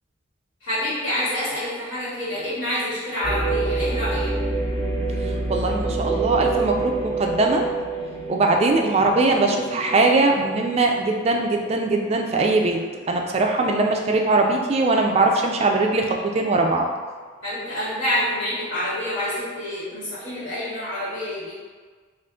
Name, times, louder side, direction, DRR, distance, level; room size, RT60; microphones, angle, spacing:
voice 1, 0.6-4.3 17.4-21.5, left 1 dB, 65° left, -12 dB, 1.4 m, -27 dB
sound 1, 3.2-13.2 13.7-13.8 14.4-14.8, right 3 dB, 10° left, 1.0 m, -28 dB
voice 2, 5.2-7.7 8.3-12.8 13.1-16.9, right 2 dB, 30° right, 2 dB, 0.3 m, -21 dB
3.5 x 2.4 x 3.7 m, 1.5 s
head